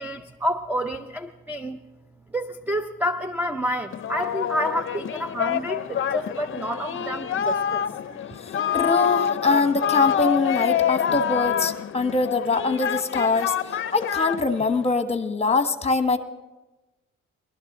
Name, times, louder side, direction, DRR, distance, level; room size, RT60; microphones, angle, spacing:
voice 1, 0.0-1.8 2.3-7.8, equal, 5° right, 8 dB, 0.5 m, -29 dB
Singing, 3.9-14.9, left 9 dB, 45° left, 0.6 m, -26 dB
voice 2, 8.4-13.5 13.9-16.2, left 3 dB, 20° left, 8 dB, 1.1 m, -23 dB
21.0 x 12.0 x 3.6 m, 1.1 s
cardioid pair, 90°, 30 cm